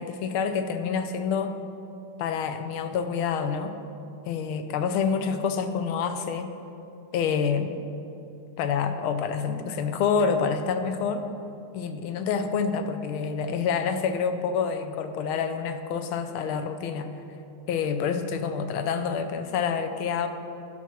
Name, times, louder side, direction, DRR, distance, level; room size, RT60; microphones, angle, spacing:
voice 1, 0.0-1.6 2.2-3.8 4.3-6.5 7.1-7.8 8.6-11.3 11.7-17.1 17.7-20.3, left 6 dB, 75° left, 8 dB, 1.5 m, -27 dB
11.5 x 5.6 x 6.2 m, 2.7 s
omnidirectional pair, 2.4 m